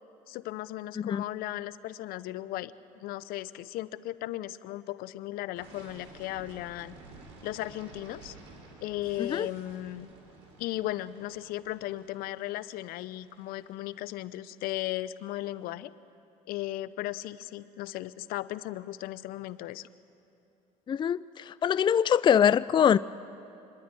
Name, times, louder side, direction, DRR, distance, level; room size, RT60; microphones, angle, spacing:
voice 1, 0.3-6.9 7.4-8.3 8.8-10.1 10.6-15.9 16.5-19.9, left 15 dB, 70° left, 17 dB, 0.6 m, -36 dB
sound 1, 5.5-15.4, right 3 dB, 90° right, 3.8 m, -53 dB
voice 2, 20.9-23.0, left 8 dB, 30° left, 17 dB, 0.4 m, -23 dB
26.5 x 11.0 x 9.1 m, 2.8 s
supercardioid pair, 80°, 16 cm